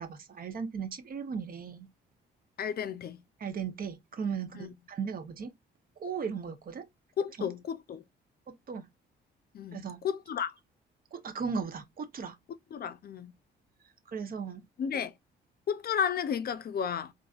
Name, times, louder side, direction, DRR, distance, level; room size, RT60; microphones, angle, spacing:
voice 1, 0.0-1.9 3.4-5.5 6.0-6.9 8.5-8.9 9.7-10.0 11.1-12.4 14.1-14.6, right 6 dB, 45° right, 0.8 m, -36 dB
voice 2, 2.6-3.2 4.5-4.7 7.2-8.0 9.5-10.6 12.7-13.3 14.8-15.1 15.7-17.1, left 7 dB, 50° left, 0.5 m, -33 dB
3.9 x 2.6 x 2.4 m
cardioid pair, 90°, 20 cm